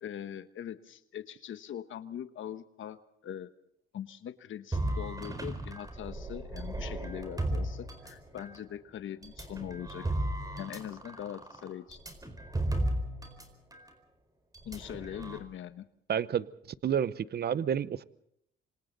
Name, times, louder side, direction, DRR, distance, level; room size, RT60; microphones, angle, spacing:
voice 1, 0.0-3.5 3.9-10.1 10.6-12.0 14.6-15.8, left 10 dB, 70° left, 11 dB, 1.2 m, -42 dB
sound 1, 4.7-8.6 9.2-13.5 13.7-13.9 14.5-15.4, right 1 dB, 15° right, 4.5 m, -35 dB
voice 2, 16.1-16.5 16.8-18.0, right 8 dB, 50° right, 16 dB, 0.8 m, -29 dB
27.5 x 25.0 x 4.0 m, 0.73 s
cardioid pair, 95°, 21 cm